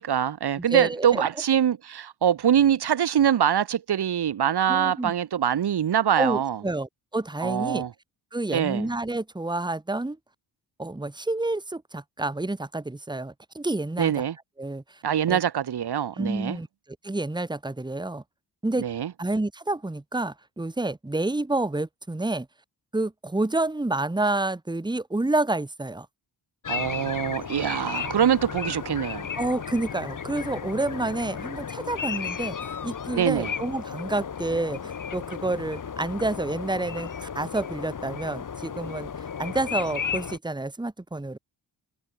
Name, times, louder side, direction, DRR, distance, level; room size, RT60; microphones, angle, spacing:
voice 1, 0.0-6.6 7.4-7.9 8.5-8.9 14.0-14.3 15.0-16.6 18.8-19.1 26.7-29.3 33.1-33.5, right 9 dB, 60° right, 2.9 m, -24 dB
voice 2, 0.7-1.2 4.7-5.1 6.2-7.9 8.3-10.2 10.8-14.1 14.6-15.0 15.3-15.4 16.2-16.7 17.0-18.2 18.6-18.9 19.2-22.5 22.9-26.1 29.3-39.1 39.4-41.4, right 2 dB, 10° right, 2.6 m, -29 dB
sound 1, 26.6-40.4, left 7 dB, 45° left, 3.7 m, -34 dB
wide cardioid pair, 135°, 43 cm